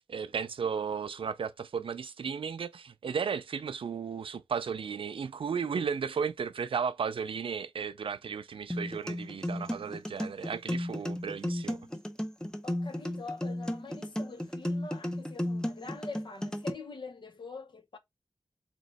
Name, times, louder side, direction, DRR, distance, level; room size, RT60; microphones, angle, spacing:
voice 1, 0.0-11.8, right 6 dB, 80° right, 0.4 m, -34 dB
sound 1, 8.7-16.7, left 1 dB, 10° left, 0.7 m, -34 dB
voice 2, 12.6-18.0, left 3 dB, 60° left, 0.8 m, -44 dB
3.2 x 2.9 x 4.0 m
wide cardioid pair, 60°, 9 cm